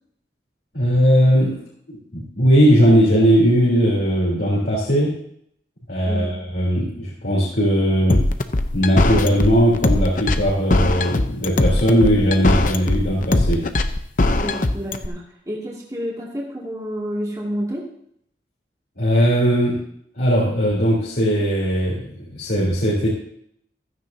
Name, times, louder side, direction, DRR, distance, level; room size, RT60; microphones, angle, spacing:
voice 1, 0.7-1.6 1.9-5.1 5.9-8.2 8.7-13.6 19.0-19.8 20.2-23.1, equal, 70° left, -6 dB, 3.7 m, -18 dB
voice 2, 6.0-6.4 14.3-17.9, equal, 20° right, -4 dB, 2.5 m, -29 dB
sound 1, 8.1-15.1, left 2 dB, 50° left, 0.8 m, -19 dB
15.5 x 14.0 x 2.8 m, 0.69 s
head